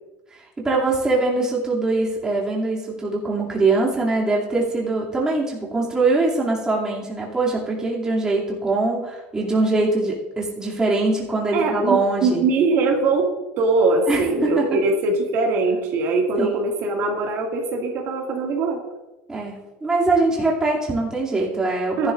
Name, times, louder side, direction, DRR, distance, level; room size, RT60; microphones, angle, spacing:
voice 1, 0.3-12.4 14.1-14.7 16.4-16.5 19.3-22.1, right 3 dB, 15° right, -4 dB, 2.5 m, -22 dB
voice 2, 11.5-13.3 13.6-18.8 22.0-22.1, right 3 dB, 55° right, 0 dB, 2.1 m, -21 dB
14.5 x 11.0 x 2.5 m, 1.1 s
supercardioid pair, 135°, 5 cm